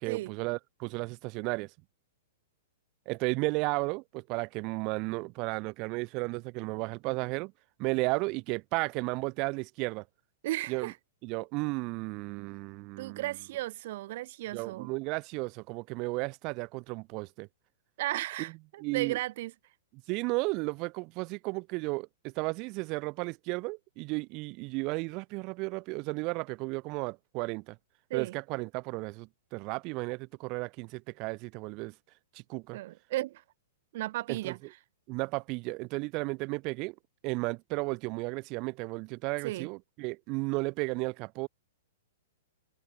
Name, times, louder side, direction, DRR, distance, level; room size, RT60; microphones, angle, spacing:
voice 1, 0.0-1.7 3.1-7.5 7.8-10.0 10.7-10.9 11.2-13.2 14.5-17.5 18.8-19.2 20.1-27.8 28.1-31.9 32.3-32.8 34.3-34.6 35.1-37.0 37.2-41.5, right 27 dB, 35° right, 1.9 m, -34 dB
voice 2, 10.4-10.9 13.0-14.9 18.0-19.5 28.1-28.4 32.7-33.4 33.9-34.6 39.4-39.7, right 16 dB, 55° right, 2.1 m, -35 dB
hypercardioid pair, 145°, 0 cm